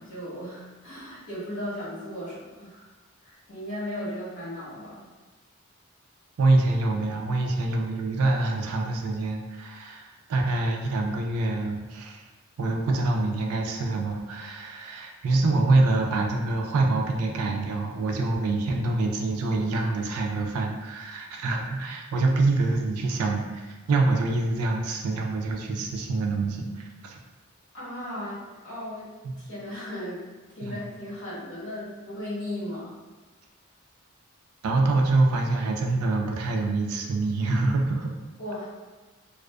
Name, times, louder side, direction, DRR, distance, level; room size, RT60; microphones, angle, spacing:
voice 1, 0.0-2.9 3.2-5.1 27.7-28.4 28.6-29.1 29.4-30.2 30.5-32.9 38.4-38.7, left 1 dB, 75° left, -9 dB, 1.2 m, -36 dB
voice 2, 6.4-12.3 12.6-27.2 29.2-29.4 30.6-30.8 34.6-38.1, right 2 dB, 85° right, 2 dB, 0.4 m, -25 dB
2.4 x 2.4 x 2.2 m, 1.2 s
head